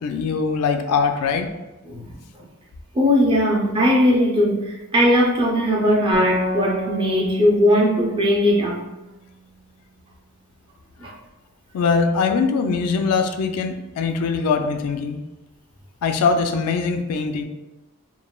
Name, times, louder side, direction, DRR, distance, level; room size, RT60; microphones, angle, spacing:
voice 1, 0.0-1.5 11.7-15.2 16.0-17.4, left 5 dB, 85° left, 6 dB, 0.3 m, -22 dB
voice 2, 2.9-4.6 4.9-8.8 11.0-11.1, equal, 20° right, -3 dB, 0.5 m, -18 dB
sound 1, 6.1-9.6, equal, 90° right, 1.1 m, -31 dB
3.1 x 2.1 x 2.2 m, 1.0 s
head